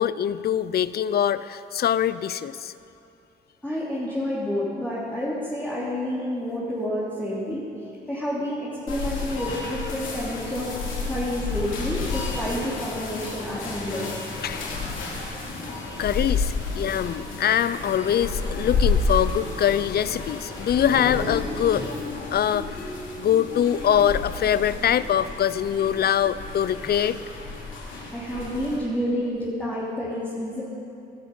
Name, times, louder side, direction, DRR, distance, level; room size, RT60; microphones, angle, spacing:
voice 1, 0.0-2.7 14.4-14.7 16.0-21.9 22.3-22.9 23.2-27.2, left 9 dB, 50° left, 16 dB, 0.6 m, -23 dB
voice 2, 3.6-7.6 8.1-10.7 11.0-14.1 28.1-30.6, equal, 10° left, -9 dB, 3.4 m, -29 dB
sound 1, 8.9-28.8, left 4 dB, 80° left, 3.3 m, -31 dB
16.5 x 13.0 x 5.5 m, 2.7 s
cardioid pair, 90°, 20 cm